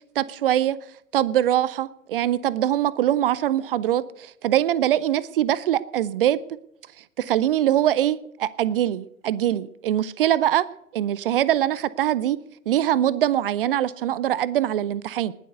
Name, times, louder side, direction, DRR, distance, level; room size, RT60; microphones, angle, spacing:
voice 1, 0.2-0.8 1.1-6.4 7.2-10.6 10.9-12.4 12.7-15.3, right 12 dB, 40° right, 0.6 m, -23 dB
19.5 x 7.7 x 6.7 m
figure-of-eight pair, 105°, 42 cm